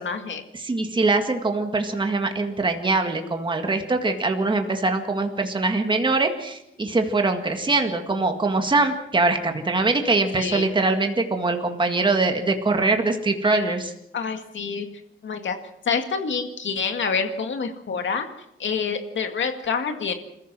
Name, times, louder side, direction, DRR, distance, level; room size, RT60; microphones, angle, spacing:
voice 1, 0.0-0.4 10.4-10.7 14.1-14.9 15.2-15.6 15.9-18.3 18.6-20.1, left 5 dB, 65° left, 6 dB, 2.2 m, -27 dB
voice 2, 0.6-13.9, right 3 dB, 20° right, 5 dB, 1.9 m, -23 dB
27.5 x 15.0 x 6.2 m, 0.80 s
wide cardioid pair, 160°, 21 cm